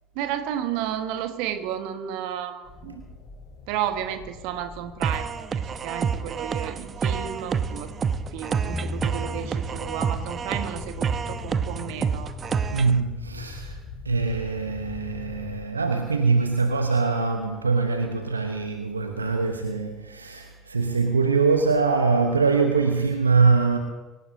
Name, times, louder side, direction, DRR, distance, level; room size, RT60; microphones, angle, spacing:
voice 1, 0.1-3.0 3.7-7.9 8.3-12.3, right 10 dB, 65° right, 1.5 m, -32 dB
sound 1, 2.6-15.6, left 4 dB, 55° left, 2.7 m, -41 dB
sound 2, 5.0-13.0, right 6 dB, 35° right, 0.9 m, -28 dB
sound 3, 8.7-11.1, left 2 dB, 10° left, 0.7 m, -36 dB
voice 2, 12.7-13.8 14.0-23.8, right 4 dB, 85° right, 1.0 m, -23 dB
25.0 x 15.0 x 2.8 m
figure-of-eight pair, 65°, 0 cm